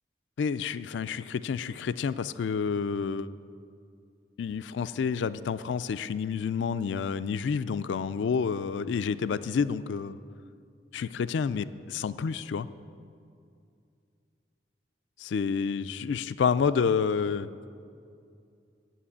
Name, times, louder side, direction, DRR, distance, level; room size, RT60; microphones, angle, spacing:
voice 1, 0.4-3.3 4.4-10.2 10.9-12.7 15.2-17.5, left 6 dB, 80° left, 15 dB, 0.3 m, -29 dB
10.0 x 7.9 x 8.4 m, 2.4 s
head